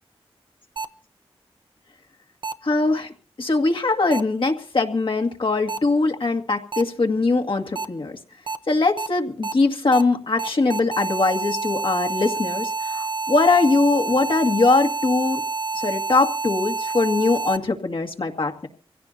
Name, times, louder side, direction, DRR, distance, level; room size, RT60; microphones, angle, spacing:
sound 1, 0.8-0.9 2.4-2.5 4.1-4.2 5.7-5.8 6.7-6.8 7.8-7.9 8.5-8.6 9.0-9.1 9.4-9.5 9.9-10.0 10.4-17.6, right 3 dB, 50° right, 0.9 m, -28 dB
voice 1, 2.6-3.1 3.4-8.1 8.7-15.4 15.8-18.7, left 3 dB, 55° left, 3 dB, 2.0 m, -21 dB
24.5 x 16.5 x 2.8 m, 0.38 s
cardioid pair, 55°, 10 cm